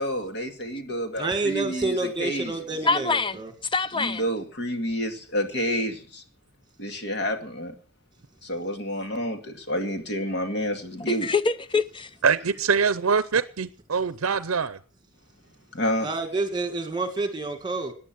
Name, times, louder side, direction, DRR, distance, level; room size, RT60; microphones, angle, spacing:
voice 1, 0.0-2.5 3.9-6.2 6.8-7.7 8.4-11.3 15.7-16.1, equal, 55° left, 2.2 m, -29 dB
voice 2, 1.2-3.5 16.0-17.9, right 3 dB, 20° right, 2.3 m, -28 dB
voice 3, 2.8-4.2 11.1-12.1, left 4 dB, 25° left, 0.6 m, -25 dB
voice 4, 12.2-14.8, right 5 dB, 70° right, 0.6 m, -24 dB
17.5 x 10.0 x 6.2 m
head